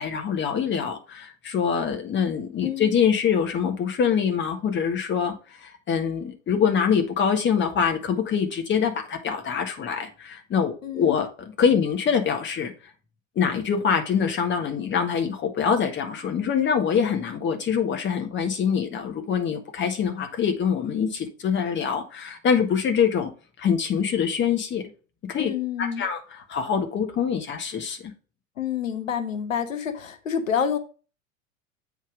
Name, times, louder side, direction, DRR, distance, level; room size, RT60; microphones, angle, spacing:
voice 1, 0.0-12.7 13.3-23.3 23.6-24.8 25.2-25.5 25.8-28.0, left 7 dB, 30° left, 1.6 m, -24 dB
voice 2, 2.6-2.9 10.8-11.2 25.4-26.0 28.6-30.8, left 8 dB, 75° left, 1.0 m, -28 dB
8.2 x 3.6 x 4.9 m
figure-of-eight pair, 85°, 39 cm